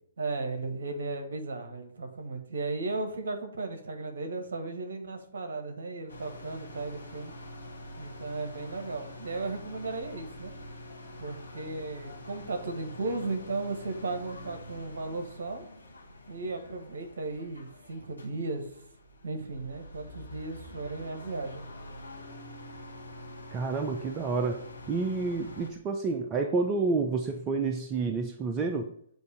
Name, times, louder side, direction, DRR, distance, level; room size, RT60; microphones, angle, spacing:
voice 1, 0.2-7.3 8.0-10.5 11.2-15.6 16.3-18.7 19.2-21.7, right 3 dB, 65° right, 6 dB, 1.2 m, -35 dB
sound 1, 6.1-25.7, left 1 dB, 85° left, 1.3 m, -46 dB
voice 2, 23.5-24.6 24.9-28.9, right 4 dB, 25° right, 5 dB, 0.6 m, -29 dB
7.9 x 2.7 x 5.0 m, 0.66 s
figure-of-eight pair, 125°, 0 cm